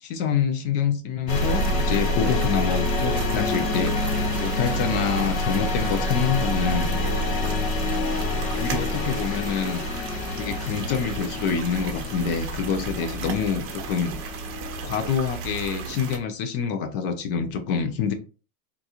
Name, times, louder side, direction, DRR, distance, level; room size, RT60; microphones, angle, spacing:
voice 1, 0.0-3.9 4.4-6.9 8.5-9.8 10.4-14.1 14.8-18.1, left 7 dB, 40° left, 9 dB, 0.5 m, -26 dB
sound 1, 1.3-15.2, left 2 dB, 70° left, 0.8 m, -27 dB
sound 2, 1.3-16.2, right 6 dB, 35° right, 0.6 m, -35 dB
3.8 x 2.4 x 2.8 m, 0.35 s
supercardioid pair, 155°, 42 cm